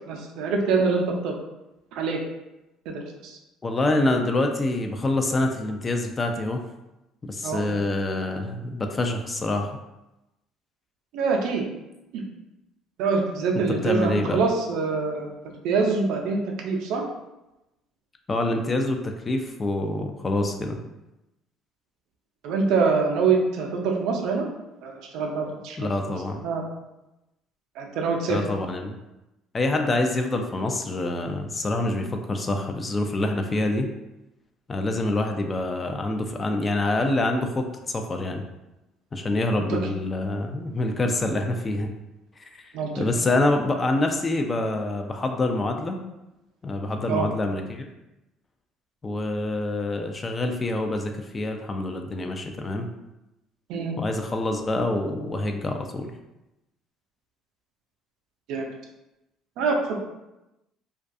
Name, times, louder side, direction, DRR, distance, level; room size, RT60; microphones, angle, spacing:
voice 1, 0.1-1.3 2.0-2.2 2.9-3.4 7.4-7.6 11.1-11.6 12.1-12.2 13.0-17.0 22.4-24.5 24.8-25.8 26.1-26.2 26.4-26.6 27.8-28.4 39.7-39.8 42.7-43.0 47.1-47.3 53.7-53.9 58.5-58.7 59.6-60.0, right 4 dB, 70° right, 1 dB, 0.4 m, -25 dB
voice 2, 3.6-6.6 7.2-9.8 13.8-14.4 18.3-20.8 25.8-26.4 28.3-29.0 29.5-33.9 34.7-38.4 39.1-41.9 42.4-46.0 46.6-47.9 49.0-52.9 54.0-56.1, left 2 dB, 30° left, 4 dB, 0.3 m, -26 dB
2.3 x 2.3 x 2.5 m, 0.95 s
supercardioid pair, 70°, 0 cm